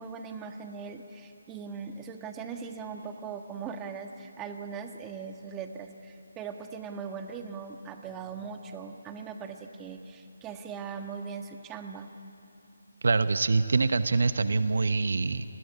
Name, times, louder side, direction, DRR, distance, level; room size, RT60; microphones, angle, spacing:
voice 1, 0.0-12.1, right 6 dB, 15° right, 5 dB, 1.5 m, -40 dB
voice 2, 13.0-15.4, right 3 dB, 65° right, 12 dB, 0.9 m, -25 dB
28.5 x 20.5 x 9.9 m, 2.7 s
figure-of-eight pair, 150°, 0 cm